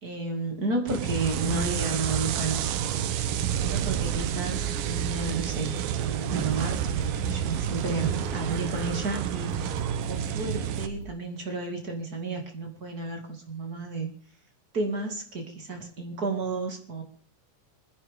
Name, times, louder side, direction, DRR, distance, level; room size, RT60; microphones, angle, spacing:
voice 1, 0.0-3.0 3.6-9.5 10.1-14.1 14.7-17.0, right 3 dB, 30° right, 3 dB, 2.3 m, -32 dB
sound 1, 0.9-10.9, right 10 dB, 85° right, 2.6 m, -29 dB
sound 2, 2.3-11.1, right 3 dB, 55° right, 2.3 m, -39 dB
26.0 x 10.5 x 3.6 m, 0.43 s
omnidirectional pair, 3.8 m